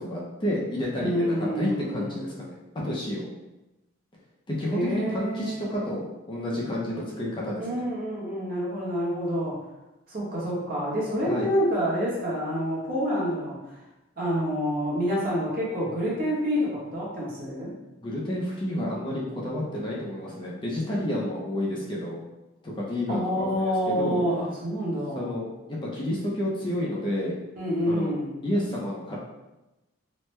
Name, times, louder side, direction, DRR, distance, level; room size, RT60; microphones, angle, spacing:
voice 1, 0.0-2.6 2.8-3.3 4.5-7.8 11.2-11.5 18.0-22.2 22.6-24.2 25.2-27.3 27.9-28.1 28.4-29.2, left 1 dB, 25° left, -5 dB, 0.5 m, -30 dB
voice 2, 1.0-2.3 4.7-5.9 7.6-9.5 10.1-13.6 14.2-17.7 23.1-25.3 27.6-28.3, equal, 45° right, -6 dB, 1.0 m, -28 dB
3.1 x 2.1 x 3.1 m, 1.0 s
head